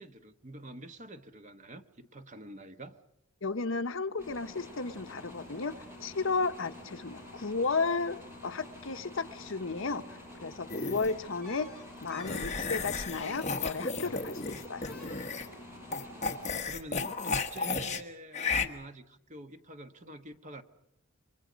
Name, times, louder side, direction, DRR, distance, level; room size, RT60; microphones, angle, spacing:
voice 1, 0.0-3.0 16.0-20.6, right 1 dB, 35° right, 1.3 m, -47 dB
voice 2, 3.4-14.9, left 4 dB, 65° left, 0.9 m, -34 dB
sound 1, 4.2-17.2, left 1 dB, 10° right, 6.9 m, -48 dB
sound 2, 10.7-11.1 12.2-15.5 15.9-18.0 18.3-18.7, left 4 dB, 35° left, 1.3 m, -33 dB
sound 3, 11.4-15.7, left 1 dB, 5° left, 7.4 m, -52 dB
29.0 x 24.0 x 5.2 m
head